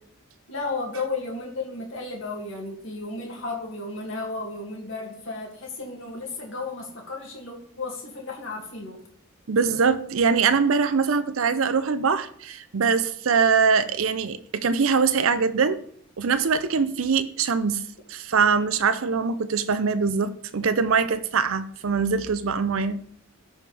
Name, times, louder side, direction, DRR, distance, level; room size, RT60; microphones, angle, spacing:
voice 1, 0.5-9.0, left 3 dB, 65° left, 2.3 m, -33 dB
voice 2, 9.5-15.8 16.2-17.8 18.1-23.0, right 5 dB, 75° right, 0.5 m, -23 dB
13.5 x 5.0 x 3.4 m
head